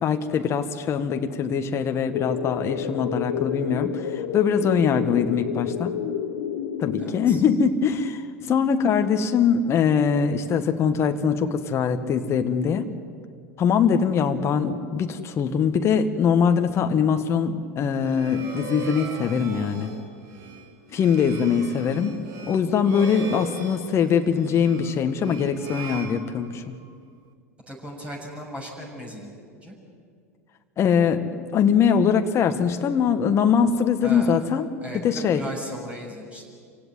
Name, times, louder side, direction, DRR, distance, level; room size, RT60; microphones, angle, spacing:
voice 1, 0.0-6.0 6.8-12.9 13.6-19.9 20.9-22.2 22.4-26.8 30.8-34.7 35.0-35.4, left 7 dB, 35° left, 7 dB, 1.7 m, -22 dB
sound 1, 2.1-7.4, left 8 dB, 60° left, 1.8 m, -29 dB
voice 2, 7.0-7.4 27.7-29.3 29.6-29.7 34.0-34.3 34.8-36.4, equal, 15° right, -1 dB, 7.4 m, -36 dB
sound 2, 17.8-26.9, right 5 dB, 45° right, 3.1 m, -39 dB
27.5 x 16.5 x 9.3 m, 2.1 s
figure-of-eight pair, 85°, 8 cm